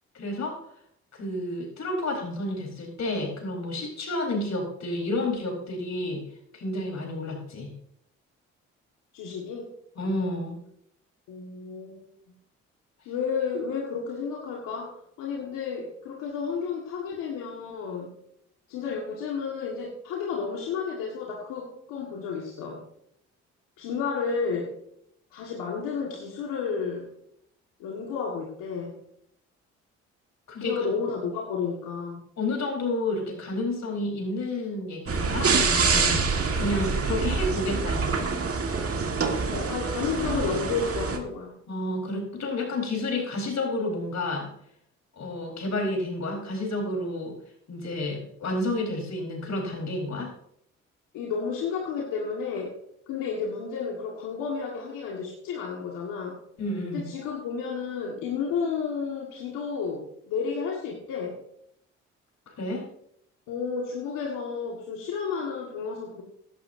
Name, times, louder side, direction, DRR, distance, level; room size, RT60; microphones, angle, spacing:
voice 1, 0.1-0.6 1.1-6.2 6.5-7.7 10.0-10.6 30.5-30.8 32.4-38.3 41.7-44.5 45.2-47.3 47.7-50.3 56.6-57.1 62.6-62.8, left 2 dB, 55° left, 1 dB, 4.4 m, -30 dB
voice 2, 9.1-9.7 11.3-12.0 13.1-18.1 18.7-22.8 23.8-24.7 25.3-27.1 27.8-29.0 30.6-32.2 39.5-41.5 51.1-52.8 53.1-56.4 56.9-61.4 63.5-66.2, left 5 dB, 80° left, -2 dB, 1.8 m, -31 dB
sound 1, 35.1-41.2, right 4 dB, 45° right, 1.8 m, -26 dB
16.5 x 11.0 x 2.7 m, 0.72 s
supercardioid pair, 60°, 32 cm